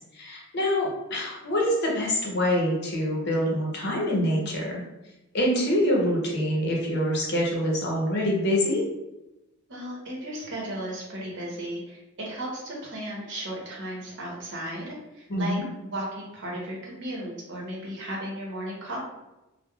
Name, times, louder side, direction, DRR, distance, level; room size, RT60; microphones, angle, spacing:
voice 1, 0.0-4.8 5.3-8.8 15.3-15.6, equal, 55° left, -2 dB, 0.7 m, -25 dB
voice 2, 9.7-15.6 15.9-19.0, right 1 dB, 60° right, -3 dB, 0.9 m, -35 dB
3.2 x 2.1 x 2.3 m, 0.99 s
head